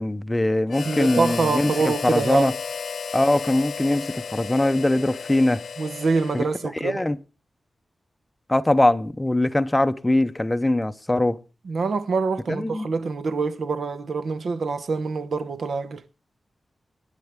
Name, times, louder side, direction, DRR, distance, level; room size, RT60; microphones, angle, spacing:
voice 1, 0.0-2.5 3.1-5.6 6.3-6.5 6.8-7.2 8.5-11.4 12.5-12.9, left 1 dB, 10° left, 0.6 m, -22 dB
Harmonica, 0.7-6.7, left 6 dB, 80° left, 0.7 m, -33 dB
voice 2, 0.8-2.5 5.8-7.0 11.6-16.0, right 4 dB, 70° right, 0.9 m, -25 dB
26.0 x 9.8 x 3.5 m
wide cardioid pair, 165°, 0 cm